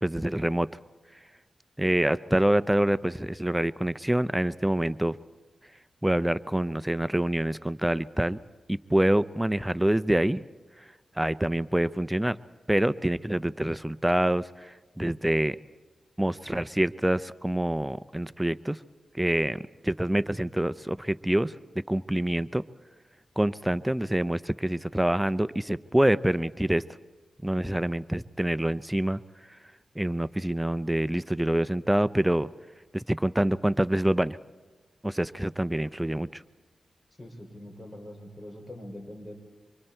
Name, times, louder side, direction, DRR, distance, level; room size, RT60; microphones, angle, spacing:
voice 1, 0.0-0.7 1.8-5.2 6.0-8.4 8.7-10.4 11.2-12.4 12.7-15.6 16.2-18.8 19.1-21.5 21.9-22.6 23.4-26.9 27.4-29.2 30.0-32.5 32.9-34.4 35.0-36.4, right 1 dB, 10° right, 16 dB, 0.5 m, -26 dB
voice 2, 37.2-39.3, left 1 dB, 20° left, 3 dB, 5.5 m, -43 dB
26.0 x 23.5 x 4.4 m, 1.2 s
cardioid pair, 50°, 0 cm